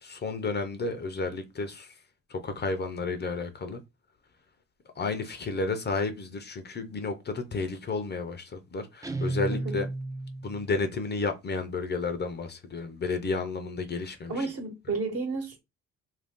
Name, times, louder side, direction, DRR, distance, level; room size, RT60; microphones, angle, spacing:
voice 1, 0.0-1.9 2.3-3.8 5.0-9.9 10.4-14.5, left 3 dB, 35° left, 0.5 m, -32 dB
Guitar, 9.0-10.7, right 2 dB, 10° right, 0.4 m, -33 dB
voice 2, 9.5-9.8 14.3-15.6, right 3 dB, 50° right, 1.1 m, -32 dB
2.5 x 2.2 x 3.5 m
cardioid pair, 90°, 30 cm